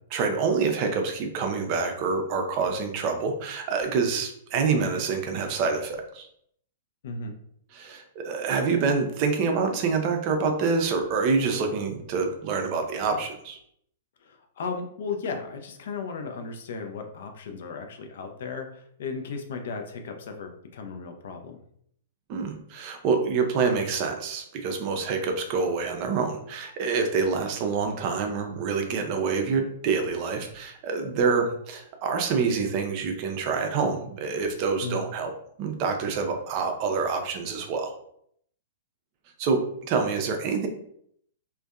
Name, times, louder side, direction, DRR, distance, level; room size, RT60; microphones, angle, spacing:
voice 1, 0.1-6.3 7.7-13.6 22.3-35.3 35.6-37.9 39.4-40.7, right 5 dB, 40° right, 4 dB, 0.4 m, -26 dB
voice 2, 7.0-7.4 14.2-21.6 34.8-35.1, left 4 dB, 60° left, 5 dB, 0.4 m, -35 dB
2.5 x 2.2 x 2.3 m, 0.68 s
figure-of-eight pair, 105°, 0 cm